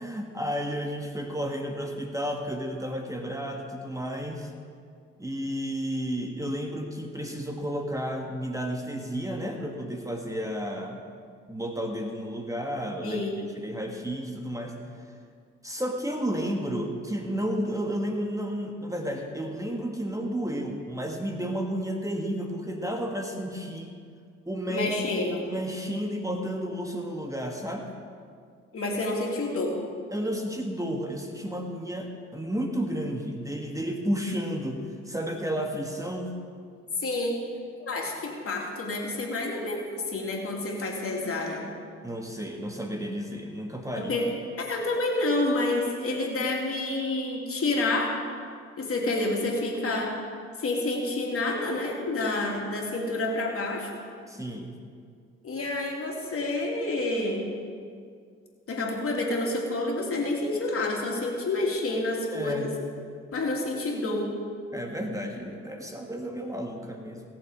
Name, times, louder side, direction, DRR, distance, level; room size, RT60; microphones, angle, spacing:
voice 1, 0.0-4.5 5.2-11.0 11.5-13.2 13.6-14.8 15.6-24.0 24.5-24.9 25.2-27.9 30.1-36.4 42.0-44.1 54.3-54.7 62.3-62.7 64.7-67.2, equal, 10° right, 2 dB, 1.5 m, -32 dB
voice 2, 13.0-13.5 24.7-25.4 28.7-29.8 37.0-37.4 37.8-41.7 44.0-44.3 44.6-48.1 48.8-50.1 50.6-53.9 55.4-57.5 58.7-62.7 63.3-64.3, left 2 dB, 45° left, -1 dB, 3.0 m, -28 dB
17.0 x 7.2 x 5.0 m, 2.2 s
supercardioid pair, 60°, 30 cm